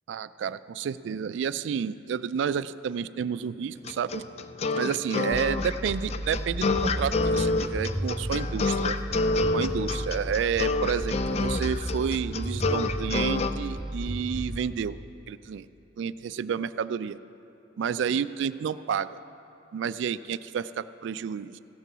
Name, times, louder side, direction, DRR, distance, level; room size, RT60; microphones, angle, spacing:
voice 1, 0.1-4.2 4.8-9.0 9.5-15.0 15.3-15.7 16.0-17.2 17.8-19.2 19.7-21.6, right 7 dB, 75° right, 15 dB, 0.3 m, -30 dB
sound 1, 3.9-13.5, left 3 dB, 35° left, 0.3 m, -28 dB
sound 2, 5.3-14.6, right 1 dB, 5° right, 0.8 m, -33 dB
15.5 x 6.8 x 6.0 m, 2.8 s
head